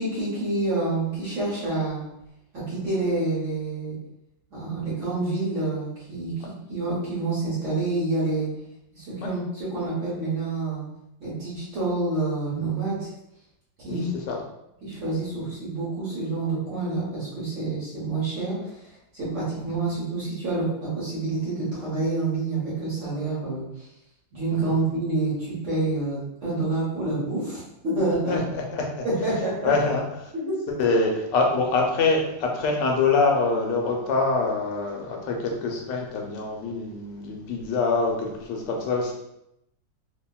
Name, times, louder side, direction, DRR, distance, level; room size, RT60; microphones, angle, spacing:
voice 1, 0.0-2.0 2.5-4.0 4.5-8.5 8.9-10.9 11.2-13.1 13.8-14.1 14.8-23.9 24.3-28.4 29.0-29.7 30.3-30.5, right 2 dB, 50° right, -8 dB, 1.0 m, -28 dB
voice 2, 13.9-14.4 28.3-29.0 29.6-30.3 30.7-39.1, left 3 dB, 75° left, 0 dB, 1.2 m, -25 dB
2.8 x 2.7 x 2.2 m, 0.82 s
omnidirectional pair, 2.1 m